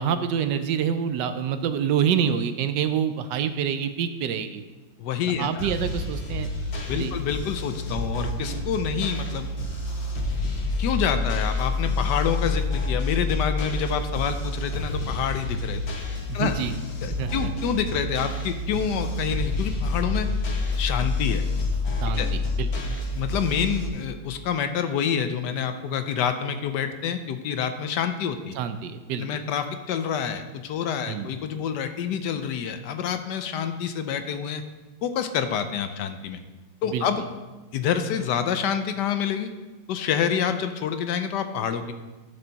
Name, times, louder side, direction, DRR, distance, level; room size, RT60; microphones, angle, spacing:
voice 1, 0.0-4.6 5.4-6.5 6.9-7.1 16.3-16.7 17.2-17.5 22.0-22.7 28.5-29.3 31.1-31.3 36.9-37.0, right 8 dB, 75° right, 10 dB, 1.2 m, -26 dB
voice 2, 5.0-5.7 6.9-9.5 10.8-15.8 16.3-16.6 17.0-20.3 20.7-21.4 22.2-22.3 22.9-28.6 29.1-34.6 35.0-36.4 36.8-37.2 37.7-39.5 39.9-41.9, left 8 dB, 75° left, 9 dB, 1.2 m, -27 dB
sound 1, 5.6-23.9, left 2 dB, 40° left, 1.2 m, -28 dB
12.0 x 5.5 x 4.0 m, 1.2 s
omnidirectional pair, 2.0 m